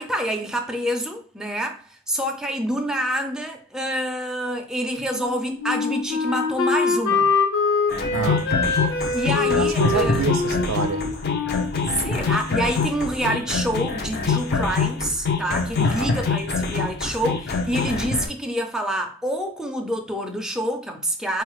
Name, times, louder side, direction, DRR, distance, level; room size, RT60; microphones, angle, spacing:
voice 1, 0.0-7.3 9.1-10.2 12.0-21.4, equal, 5° right, 0.4 m, -27 dB
Wind instrument woodwind instrument, 5.1-12.6, left 4 dB, 70° left, 0.9 m, -24 dB
sound 1, 7.9-18.2, left 4 dB, 50° left, 0.6 m, -25 dB
voice 2, 8.1-8.5 9.4-11.1 15.8-16.2, right 6 dB, 85° right, 0.4 m, -27 dB
4.1 x 2.4 x 3.0 m
head